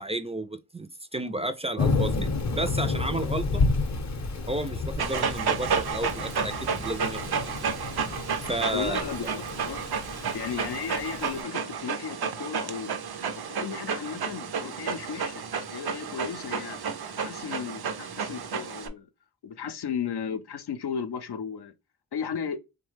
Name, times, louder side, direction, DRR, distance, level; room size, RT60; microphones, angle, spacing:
voice 1, 0.0-3.6 4.5-7.2 8.5-9.0, right 1 dB, 15° right, 0.3 m, -32 dB
Thunder / Rain, 1.8-11.4, left 3 dB, 45° left, 0.6 m, -31 dB
Dog, 5.0-18.9, right 6 dB, 75° right, 0.6 m, -31 dB
voice 2, 8.7-9.8 10.3-12.9 13.3-16.8 17.2-19.1 19.4-21.7 22.1-22.6, left 7 dB, 85° left, 0.5 m, -35 dB
3.1 x 2.2 x 3.1 m
cardioid pair, 45°, 39 cm